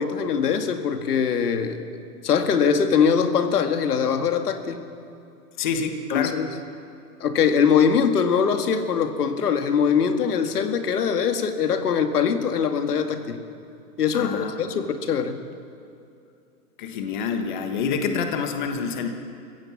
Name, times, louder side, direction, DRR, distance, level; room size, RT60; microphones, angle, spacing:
voice 1, 0.0-1.8 2.2-4.8 6.1-6.5 7.2-13.4 14.0-15.4, left 6 dB, 75° left, 7 dB, 2.1 m, -22 dB
voice 2, 5.6-6.4 14.1-14.8 16.8-19.1, left 5 dB, 30° left, 5 dB, 1.4 m, -27 dB
25.5 x 15.5 x 7.3 m, 2.5 s
hypercardioid pair, 175°, 47 cm